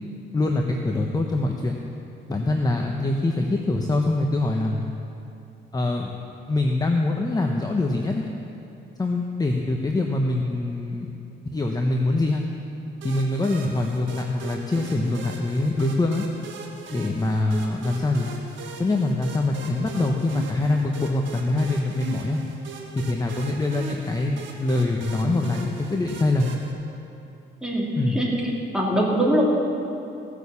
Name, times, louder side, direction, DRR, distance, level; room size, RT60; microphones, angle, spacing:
voice 1, 0.3-1.7 2.3-4.8 5.7-6.2 6.5-8.2 9.0-11.1 11.5-12.4 13.0-16.3 16.9-18.3 18.8-22.4 23.0-26.6 28.0-28.2, left 2 dB, 20° left, 2 dB, 0.9 m, -24 dB
sound 1, 13.0-26.7, right 5 dB, 75° right, 1.7 m, -40 dB
voice 2, 27.6-28.3 28.7-29.4, right 1 dB, 5° right, -4 dB, 3.0 m, -22 dB
16.5 x 6.6 x 7.0 m, 2.7 s
cardioid pair, 90°, 20 cm